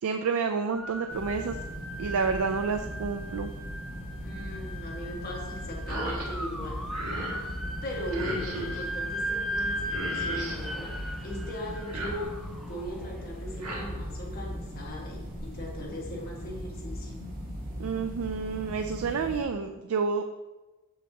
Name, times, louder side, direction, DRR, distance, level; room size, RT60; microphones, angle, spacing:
voice 1, 0.0-1.6 2.0-3.5 17.8-20.2, right 5 dB, 70° right, 6 dB, 0.4 m, -29 dB
sound 1, 0.7-13.8, equal, ahead, 0.5 m, -38 dB
sound 2, 1.1-19.4, equal, 40° right, 1.5 m, -39 dB
voice 2, 4.2-6.8 7.1-7.6 7.8-10.9 11.2-12.4 12.7-17.1, left 1 dB, 45° left, -3 dB, 1.6 m, -39 dB
sound 3, 5.9-6.3 6.6-7.4 8.1-8.8 9.6-9.7 9.9-10.6 11.7-12.6 13.3-13.8, right 1 dB, 90° right, 1.7 m, -36 dB
6.5 x 6.4 x 2.9 m, 1.2 s
head